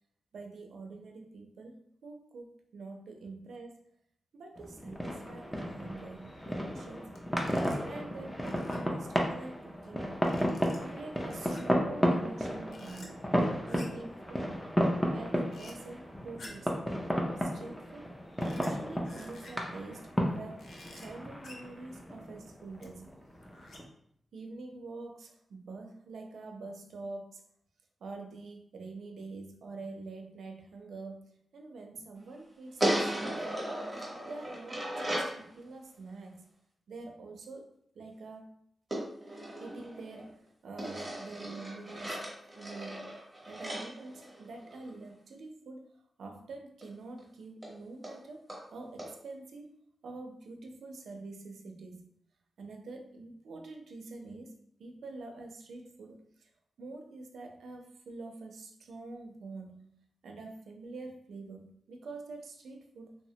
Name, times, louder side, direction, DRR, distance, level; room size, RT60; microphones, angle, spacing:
voice 1, 0.3-3.8 4.3-7.1 7.5-10.1 10.8-13.1 13.7-14.5 15.1-16.9 17.4-18.1 18.5-20.7 21.0-23.2 24.3-27.4 28.0-33.7 34.0-36.4 36.9-37.7 37.9-38.5 39.3-43.2 43.5-45.8 46.2-48.4 48.7-49.8 50.0-52.1 52.6-56.5 56.8-63.2, right 3 dB, 85° right, 3 dB, 0.4 m, -46 dB
sound 1, 4.5-23.8, equal, 5° left, 0.4 m, -33 dB
sound 2, 7.1-7.2 7.5-7.8 8.5-9.0 10.2-10.8 11.3-11.8 12.7-13.1 13.6-14.1 15.5-15.7 16.4-16.7 18.4-18.7 19.0-19.7 20.6-21.1 21.4-21.7 22.8-22.9 23.4-24.0, left 2 dB, 65° left, 0.5 m, -51 dB
sound 3, 32.8-35.4 38.9-40.3 40.8-44.9 46.8-46.9 47.2-47.3 47.6-47.7 48.0-48.1 48.5-48.6 49.0-49.1, right 1 dB, 10° right, 0.8 m, -36 dB
3.1 x 2.0 x 2.7 m, 0.69 s
wide cardioid pair, 170°, 0 cm